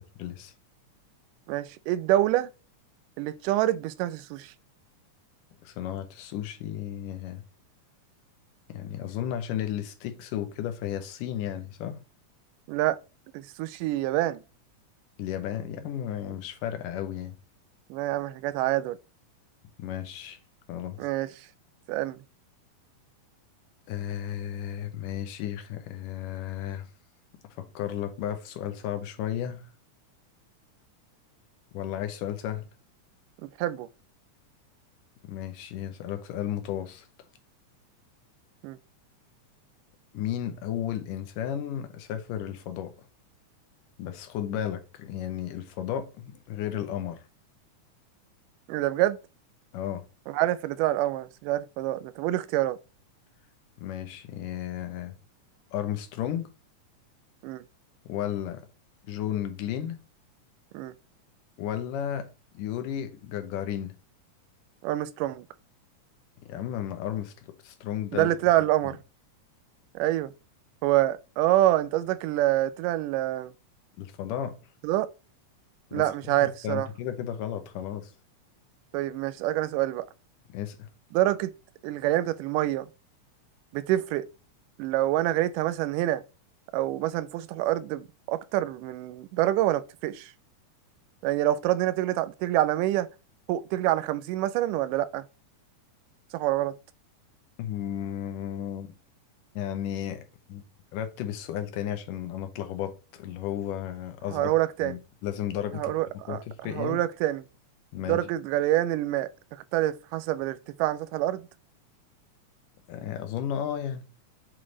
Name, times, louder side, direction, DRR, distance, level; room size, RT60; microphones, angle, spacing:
voice 1, 0.2-0.5 5.6-7.4 8.7-12.0 15.2-17.3 19.8-20.4 20.7-21.0 23.9-26.9 27.6-29.7 31.7-32.7 35.2-37.1 40.1-42.9 44.0-47.2 49.7-50.1 53.8-55.2 55.7-56.5 58.1-58.7 59.0-60.0 61.6-62.3 62.5-64.0 66.4-68.3 74.0-74.6 75.9-76.0 76.4-78.1 80.5-80.9 97.6-99.0 99.6-100.6 100.9-104.5 104.8-105.9 106.3-107.0 107.9-108.2 112.9-114.0, left 10 dB, 85° left, 2.5 m, -33 dB
voice 2, 1.5-2.5 3.2-4.5 12.7-13.0 13.3-14.4 17.9-19.0 21.0-21.5 21.9-22.2 33.4-33.9 38.6-38.8 48.7-49.2 50.3-52.8 57.4-57.6 60.7-60.9 64.8-65.5 68.1-69.0 70.0-70.3 70.8-73.5 74.8-75.1 75.9-76.9 78.9-80.1 81.1-81.5 81.8-82.9 83.7-84.3 84.8-86.2 86.7-90.3 91.2-93.1 93.5-95.3 96.3-96.8 104.3-105.0 105.7-107.4 108.0-111.5, right 14 dB, 85° right, 2.2 m, -26 dB
7.5 x 3.3 x 3.8 m
omnidirectional pair, 3.7 m